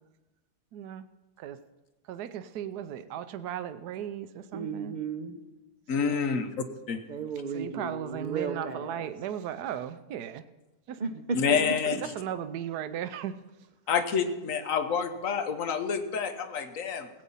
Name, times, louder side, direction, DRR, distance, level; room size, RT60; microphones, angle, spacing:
voice 1, 0.7-1.1 1.4-1.6 2.0-5.0 5.9-6.4 7.5-10.4 10.9-11.0 11.4-13.4, right 10 dB, 80° right, 11 dB, 1.2 m, -36 dB
voice 2, 4.5-5.4 7.1-9.1 11.0-11.4 11.7-11.8 13.9-14.0, right 5 dB, 35° right, 7 dB, 0.8 m, -34 dB
voice 3, 5.9-6.6 6.9-7.0 11.3-12.0 13.9-17.1, left 6 dB, 55° left, 9 dB, 1.3 m, -28 dB
16.5 x 8.8 x 5.5 m, 1.0 s
omnidirectional pair, 1.7 m